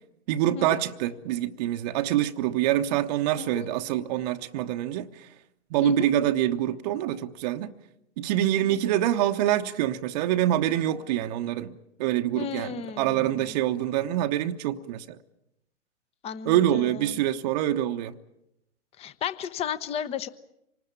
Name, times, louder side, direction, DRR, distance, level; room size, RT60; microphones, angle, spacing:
voice 1, 0.3-5.3 5.7-7.7 8.2-15.2 16.4-18.1, right 12 dB, 35° right, 0.9 m, -26 dB
voice 2, 12.3-13.5 16.2-17.0 19.0-20.3, left 8 dB, 15° left, 0.9 m, -34 dB
26.0 x 20.0 x 8.6 m
figure-of-eight pair, 110°, 36 cm